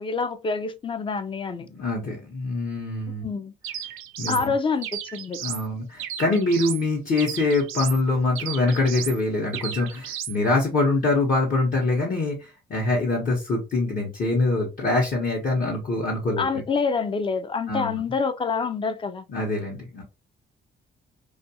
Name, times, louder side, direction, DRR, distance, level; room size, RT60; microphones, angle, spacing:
voice 1, 0.0-1.7 3.2-3.5 4.3-5.4 16.4-19.2, left 5 dB, 25° left, 0.4 m, -27 dB
voice 2, 1.7-3.2 4.2-4.5 5.4-16.4 17.7-18.0 19.3-20.0, left 2 dB, 45° left, 0.9 m, -24 dB
sound 1, 3.6-4.5 4.8-5.7 6.0-6.8 7.2-8.0 8.4-9.2 9.5-10.4, right 10 dB, 85° right, 0.5 m, -34 dB
2.4 x 2.3 x 2.7 m
cardioid pair, 90°, 20 cm